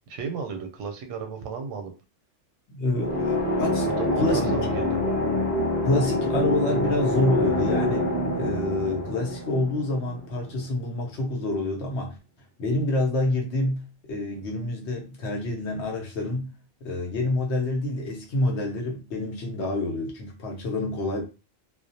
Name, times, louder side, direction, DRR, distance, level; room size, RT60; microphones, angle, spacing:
voice 1, 0.1-1.9 3.1-3.2 3.8-5.0, right 6 dB, 85° right, 0.9 m, -34 dB
voice 2, 2.7-4.4 5.8-12.2 12.6-16.5 16.8-21.2, left 2 dB, 70° left, 0.9 m, -27 dB
sound 1, 2.9-10.6, left 1 dB, 30° left, 0.9 m, -26 dB
2.3 x 2.0 x 2.6 m
omnidirectional pair, 1.2 m